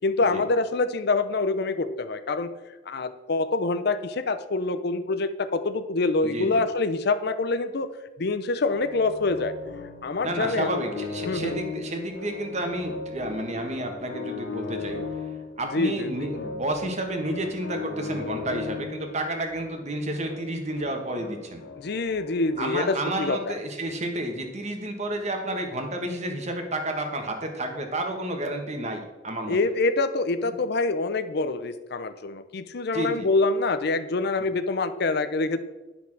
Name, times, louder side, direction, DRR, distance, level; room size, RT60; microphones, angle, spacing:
voice 1, 0.0-2.5 2.9-7.9 8.2-9.5 10.0-10.8 11.3-11.6 15.7-16.3 21.8-23.6 29.5-35.6, left 3 dB, 60° left, 11 dB, 0.6 m, -26 dB
voice 2, 6.2-6.6 10.2-15.0 15.6-21.6 22.6-29.6 30.4-30.5 32.9-33.3, right 1 dB, 40° right, 4 dB, 1.5 m, -31 dB
sound 1, 8.6-22.7, left 4 dB, 80° left, 1.2 m, -37 dB
9.9 x 5.9 x 6.0 m, 1.1 s
head